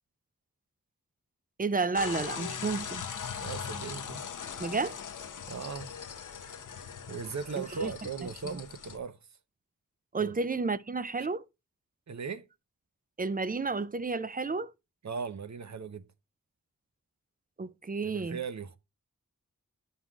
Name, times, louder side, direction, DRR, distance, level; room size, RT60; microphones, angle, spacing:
voice 1, 1.6-3.0 4.6-5.0 7.6-7.9 8.4-8.6 10.1-11.5 13.2-14.7 17.6-18.4, right 4 dB, 30° right, 0.4 m, -31 dB
sound 1, 1.9-9.0, left 7 dB, 70° left, 0.7 m, -40 dB
voice 2, 3.4-4.2 5.5-5.9 7.1-9.2 10.2-10.3 12.1-12.5 15.0-16.1 18.0-18.8, right 5 dB, 60° right, 0.7 m, -38 dB
11.0 x 5.5 x 2.3 m
wide cardioid pair, 85°, 32 cm